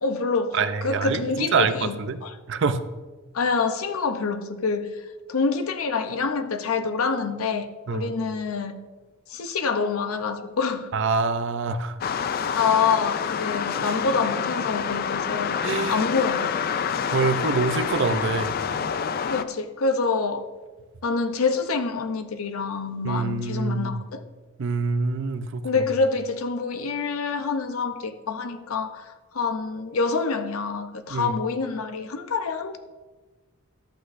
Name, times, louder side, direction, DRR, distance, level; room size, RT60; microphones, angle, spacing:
voice 1, 0.0-2.4 3.3-8.8 9.3-10.9 12.6-16.5 19.3-20.5 21.0-24.2 25.6-32.8, left 4 dB, 80° left, 0.6 m, -26 dB
voice 2, 0.5-2.2 2.5-2.8 7.9-8.1 10.9-11.9 15.6-16.0 17.1-18.5 23.0-24.0 24.6-25.6 31.1-31.4, right 4 dB, 60° right, 0.5 m, -25 dB
sound 1, 12.0-19.4, left 7 dB, 45° left, 0.3 m, -27 dB
11.5 x 8.0 x 2.6 m
head